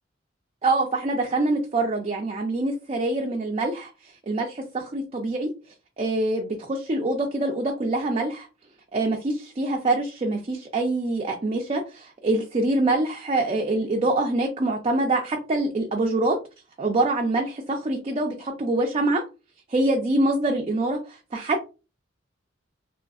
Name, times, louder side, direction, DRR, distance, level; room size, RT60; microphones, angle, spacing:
voice 1, 0.6-3.9 4.2-5.5 6.0-8.5 8.9-16.4 16.8-19.2 19.7-21.6, right 2 dB, 30° right, 1 dB, 0.4 m, -25 dB
3.5 x 2.4 x 2.3 m, 0.30 s
head